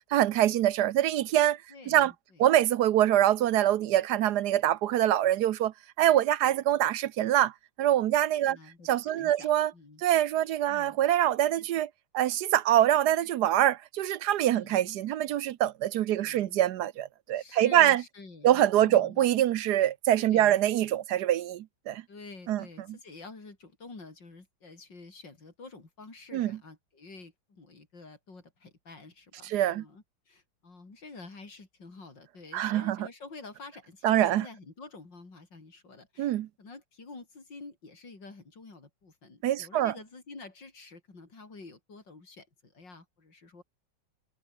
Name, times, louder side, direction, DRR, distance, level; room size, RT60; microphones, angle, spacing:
voice 1, 0.1-1.6 1.9-2.1 2.4-5.7 6.0-7.5 7.8-8.6 8.8-9.7 10.0-11.9 12.1-18.0 18.4-22.0 22.5-22.6 26.3-26.5 29.4-29.8 32.5-33.0 34.0-34.4 36.2-36.5 39.4-39.9, right 12 dB, 70° right, 1.2 m, -24 dB
voice 2, 1.7-2.5 8.5-10.0 10.7-11.0 14.6-14.9 16.2-16.6 17.3-19.3 20.3-20.6 22.1-43.6, left 3 dB, 85° left, 5.4 m, -49 dB
omnidirectional pair, 1.9 m